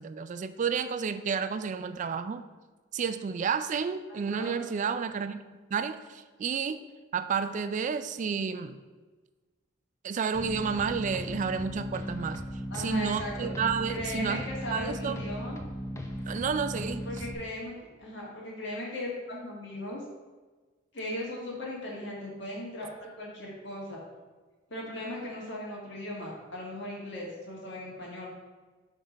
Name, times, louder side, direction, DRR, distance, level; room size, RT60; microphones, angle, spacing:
voice 1, 0.0-2.4 2.9-5.4 5.7-6.8 7.1-8.8 10.0-12.4 12.8-14.4 14.7-15.2 16.3-17.1, right 6 dB, 40° right, 11 dB, 0.3 m, -31 dB
voice 2, 4.1-4.6 12.7-13.5 13.9-15.6 17.0-20.0 20.9-24.0 24.7-28.3, left 1 dB, 65° left, -4 dB, 1.8 m, -38 dB
sound 1, 10.3-17.3, equal, 15° left, 0.5 m, -37 dB
5.6 x 3.6 x 5.2 m, 1.3 s
head